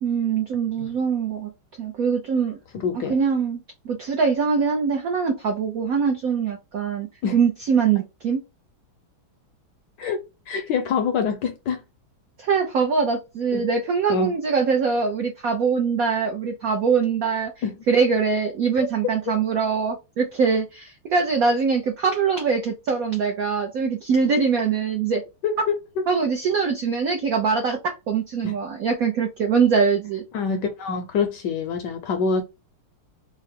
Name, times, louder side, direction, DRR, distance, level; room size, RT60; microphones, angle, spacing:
voice 1, 0.0-1.5 1.8-2.6 3.1-8.4 12.4-17.5 17.9-25.2 26.1-30.2, right 5 dB, 75° right, 0.8 m, -23 dB
voice 2, 2.7-3.1 7.2-7.4 10.0-10.2 10.5-11.8 13.5-13.7 14.1-14.3 17.6-17.7 18.8-18.9 25.4-25.8 28.4-28.5 30.3-32.4, left 5 dB, 75° left, 1.0 m, -25 dB
3.8 x 2.0 x 4.3 m
omnidirectional pair, 2.3 m